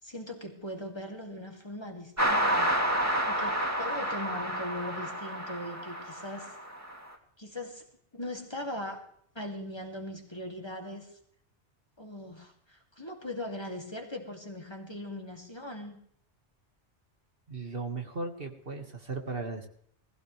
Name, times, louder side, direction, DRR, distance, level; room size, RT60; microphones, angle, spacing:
voice 1, 0.0-2.7 3.3-6.6 7.4-7.8 8.1-9.0 9.3-11.2 12.0-16.0, left 1 dB, 25° left, 2 dB, 2.6 m, -40 dB
sound 1, 2.2-7.0, equal, 15° right, 2.5 m, -30 dB
voice 2, 17.5-19.7, right 3 dB, 55° right, 4 dB, 1.9 m, -36 dB
19.5 x 16.0 x 3.3 m, 0.63 s
omnidirectional pair, 1.2 m